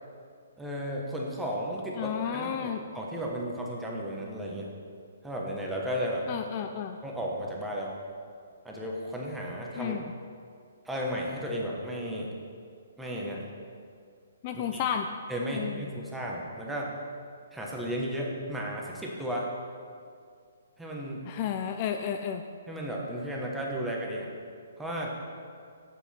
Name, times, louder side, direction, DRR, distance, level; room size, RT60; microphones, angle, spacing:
voice 1, 0.6-4.7 5.2-6.3 7.0-7.9 8.6-9.9 10.8-12.3 13.0-13.4 14.5-14.8 15.3-16.9 17.5-19.5 20.8-21.3 22.7-24.3 24.8-25.1, equal, 5° right, -3 dB, 1.2 m, -34 dB
voice 2, 2.0-2.8 6.3-7.0 9.8-10.0 14.4-15.1 15.5-15.9 21.3-22.4, left 9 dB, 35° left, 6 dB, 0.4 m, -32 dB
7.6 x 7.2 x 4.4 m, 2.2 s
hypercardioid pair, 150°, 0 cm